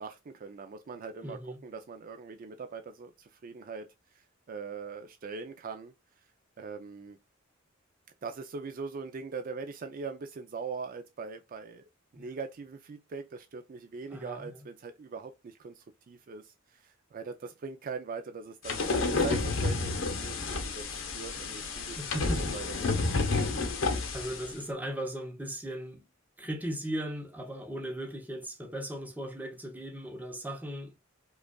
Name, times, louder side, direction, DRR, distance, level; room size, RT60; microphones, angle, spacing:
voice 1, 0.0-3.9 4.5-5.9 6.6-7.2 8.2-11.8 12.1-22.3 22.5-23.2, right 4 dB, 45° right, 0.4 m, -41 dB
voice 2, 1.2-1.6 12.1-12.3 14.1-14.6 19.1-19.5 22.0-22.5 24.1-26.1 26.4-30.9, equal, 10° right, 0.8 m, -38 dB
sound 1, 18.6-24.5, left 3 dB, 75° left, 0.9 m, -30 dB
5.0 x 2.3 x 2.2 m
head